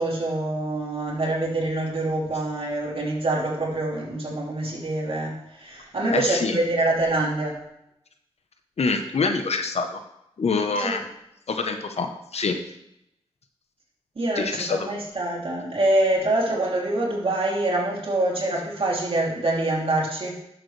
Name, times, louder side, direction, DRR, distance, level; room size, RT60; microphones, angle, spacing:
voice 1, 0.0-7.6 10.8-11.0 14.1-20.4, right 2 dB, 65° right, -4 dB, 3.0 m, -25 dB
voice 2, 6.1-6.6 8.8-10.0 10.4-11.0 11.5-12.6 14.4-14.9, left 4 dB, 85° left, 6 dB, 0.9 m, -25 dB
11.0 x 7.1 x 3.3 m, 0.82 s
cardioid pair, 55°, 11 cm